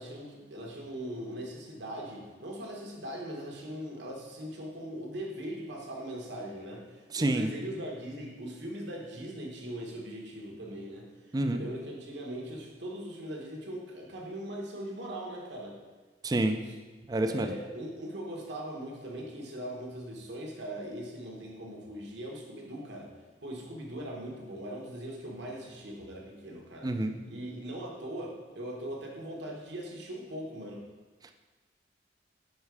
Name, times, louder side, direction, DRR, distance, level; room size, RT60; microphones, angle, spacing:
voice 1, 0.0-15.8 16.6-16.8 17.2-23.1 23.4-26.9 27.2-30.8, right 1 dB, 75° right, -1 dB, 1.3 m, -40 dB
voice 2, 7.1-7.5 11.3-11.6 16.2-16.6 17.1-17.5 26.8-27.1, right 1 dB, 20° right, 7 dB, 0.3 m, -27 dB
5.4 x 4.5 x 4.7 m, 1.3 s
head